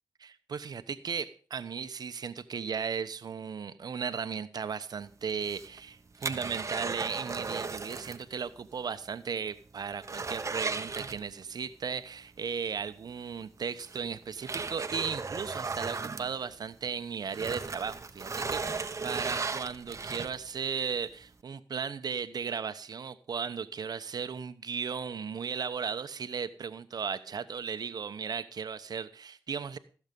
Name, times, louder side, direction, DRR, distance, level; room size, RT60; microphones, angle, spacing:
voice 1, 0.2-29.8, right 6 dB, 65° right, 12 dB, 1.0 m, -36 dB
sound 1, 5.3-8.3 8.6-8.7 9.1-9.2 9.6-11.6 13.0-13.1 13.8-16.9 17.2-20.6 21.1-21.2, right 4 dB, 45° right, 1.1 m, -36 dB
15.5 x 7.2 x 5.4 m, 0.41 s
cardioid pair, 45°, 7 cm